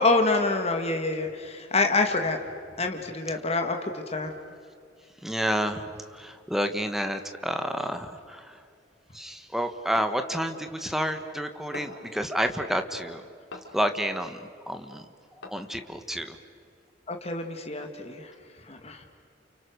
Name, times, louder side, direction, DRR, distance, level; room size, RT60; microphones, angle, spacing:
voice 1, 0.0-2.4 2.8-4.3 17.1-18.3 18.7-19.0, left 3 dB, 35° left, 4 dB, 1.9 m, -26 dB
voice 2, 5.2-8.6 9.1-13.2 13.7-14.4 14.7-15.0 15.5-16.3, equal, ahead, 7 dB, 1.5 m, -29 dB
sound 1, 9.9-10.2 11.7-12.1 13.5-13.9 15.4-15.8, left 2 dB, 85° left, 3.6 m, -42 dB
30.0 x 29.0 x 6.6 m, 2.3 s
head